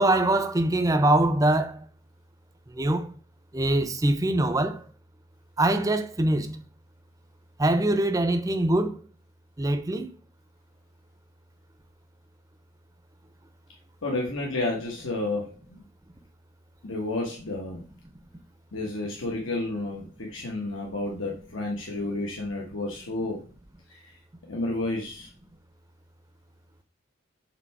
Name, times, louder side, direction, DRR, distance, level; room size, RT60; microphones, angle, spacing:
voice 1, 0.0-1.8 2.7-3.1 3.5-4.8 5.6-6.6 7.6-9.0 9.6-10.1, right 1 dB, 15° right, 0.5 m, -23 dB
voice 2, 14.0-15.8 16.8-17.8 18.7-23.4 23.9-24.0 24.5-25.3, left 2 dB, 80° left, 1.2 m, -31 dB
7.4 x 3.2 x 4.7 m
head